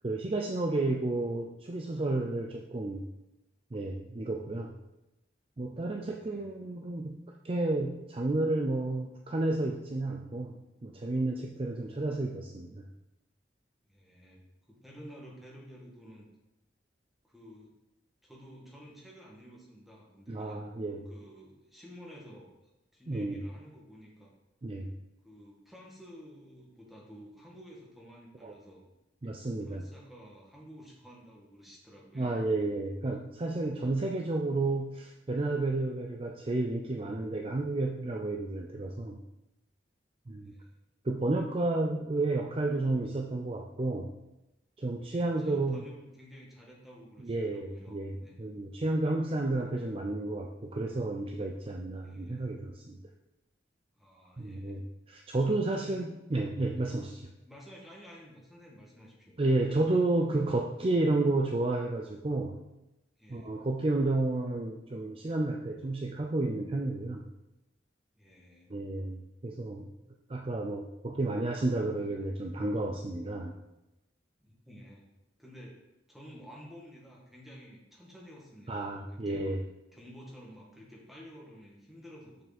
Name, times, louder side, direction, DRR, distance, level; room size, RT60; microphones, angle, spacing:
voice 1, 0.0-3.1 3.7-4.7 5.6-7.2 7.4-10.5 10.8-12.8 20.3-21.1 23.1-23.4 24.6-24.9 28.4-28.5 29.2-29.8 32.2-39.2 40.3-40.5 41.0-44.1 44.8-45.8 47.2-53.0 54.4-57.3 59.4-62.6 63.3-67.2 68.7-69.9 70.3-73.5 78.7-79.6, right 2 dB, 30° right, 2 dB, 0.5 m, -31 dB
voice 2, 5.8-6.5 11.9-12.0 13.9-16.3 17.3-17.7 18.2-20.7 21.1-22.5 22.9-24.3 25.2-28.8 29.6-32.4 40.4-40.7 45.0-48.4 52.0-52.5 53.9-54.9 55.4-56.0 57.4-59.7 63.2-63.6 68.1-68.7 74.4-75.0 75.4-75.8 76.1-79.4 79.9-82.5, equal, ahead, -4 dB, 1.8 m, -52 dB
6.7 x 6.5 x 4.2 m, 0.93 s
head